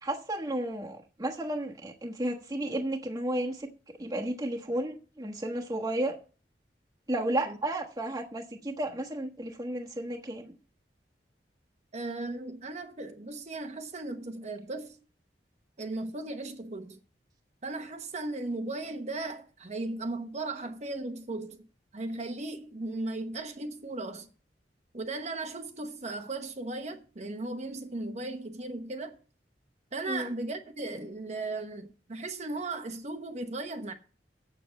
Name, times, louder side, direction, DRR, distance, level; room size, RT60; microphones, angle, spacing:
voice 1, 0.0-3.7 4.0-6.2 7.1-10.6 30.1-30.3, right 1 dB, 20° right, 1.3 m, -33 dB
voice 2, 11.9-15.0 15.8-17.0 17.6-21.6 21.9-24.3 24.9-29.2 29.9-33.9, right 2 dB, 40° right, 1.0 m, -36 dB
7.7 x 7.3 x 7.4 m
head